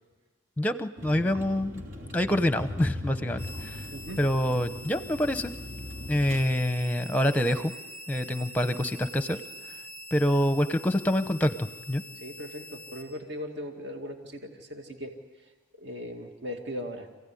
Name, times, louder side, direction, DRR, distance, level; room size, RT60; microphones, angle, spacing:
voice 1, 0.6-1.8 2.1-3.8 4.2-5.5 6.1-7.7 8.1-9.4 10.1-12.0, left 1 dB, 10° left, 10 dB, 0.8 m, -26 dB
Vehicle, 1.0-6.4, left 1 dB, 75° right, 3.2 m, -40 dB
sound 1, 3.4-13.0, left 1 dB, 10° right, 2.6 m, -45 dB
voice 2, 12.1-15.5 15.8-17.1, equal, 55° right, 3 dB, 2.2 m, -39 dB
27.5 x 16.5 x 9.8 m, 1.3 s
head